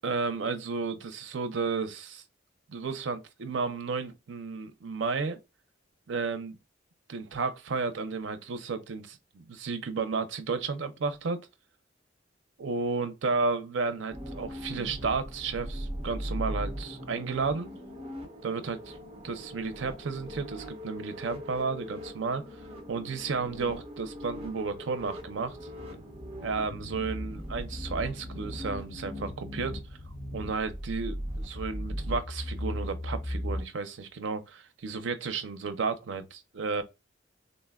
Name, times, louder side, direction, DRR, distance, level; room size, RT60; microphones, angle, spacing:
voice 1, 0.0-2.2 2.7-5.4 6.1-6.6 7.1-11.4 12.6-17.7 18.4-18.9 19.2-22.4 22.9-25.6 26.4-29.8 30.3-36.8, right 4 dB, 80° right, 0.5 m, -32 dB
sound 1, 14.1-33.6, equal, 35° right, 0.9 m, -38 dB
3.8 x 2.1 x 2.3 m
head